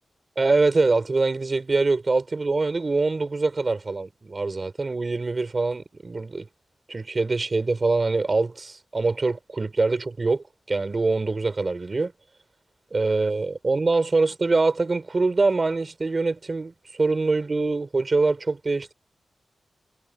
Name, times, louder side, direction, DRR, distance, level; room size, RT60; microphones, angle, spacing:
voice 1, 0.4-6.5 6.9-12.1 12.9-18.9, right 3 dB, 35° right, 5.4 m, -24 dB
wide cardioid pair, 90°, 0 cm